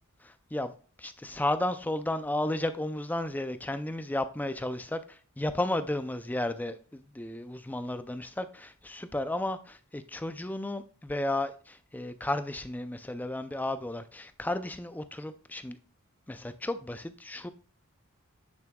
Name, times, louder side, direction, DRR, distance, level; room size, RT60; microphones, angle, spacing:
voice 1, 0.2-0.7 1.0-15.8 16.3-17.5, left 1 dB, 10° left, 0.4 m, -33 dB
8.8 x 7.1 x 2.3 m
head